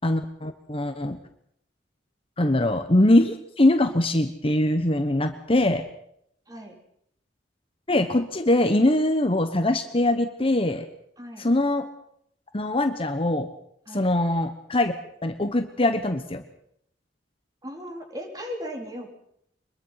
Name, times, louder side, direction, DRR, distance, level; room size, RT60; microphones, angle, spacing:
voice 1, 0.0-1.2 2.4-5.8 7.9-10.8 11.4-11.9 12.5-13.5 13.9-14.9 15.2-16.4, left 1 dB, 30° left, 8 dB, 1.2 m, -22 dB
voice 2, 11.2-11.5 13.9-14.1 17.6-19.1, equal, 20° right, 2 dB, 4.1 m, -37 dB
24.0 x 22.0 x 5.8 m, 0.72 s
head